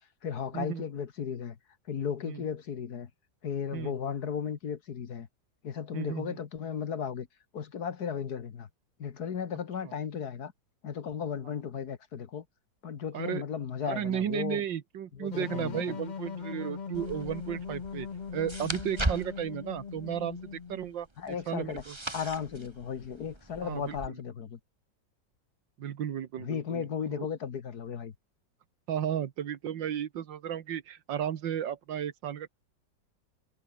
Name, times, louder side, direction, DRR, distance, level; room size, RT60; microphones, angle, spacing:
voice 1, 0.2-1.6 1.9-3.1 3.4-5.3 5.6-7.3 7.5-8.7 9.0-10.5 10.8-12.5 12.8-14.6 15.1-16.0 21.2-21.8 22.1-24.6 26.4-28.1, left 7 dB, 60° left, 1.9 m, -35 dB
voice 2, 5.9-6.4 13.1-13.4 13.8-18.1 18.3-22.0 23.6-24.2 25.8-27.3 28.9-32.5, right 9 dB, 80° right, 1.9 m, -34 dB
sound 1, 15.3-20.9, left 6 dB, 40° left, 0.6 m, -40 dB
sound 2, 16.9-24.1, right 2 dB, 15° right, 2.3 m, -39 dB
omnidirectional pair, 2.0 m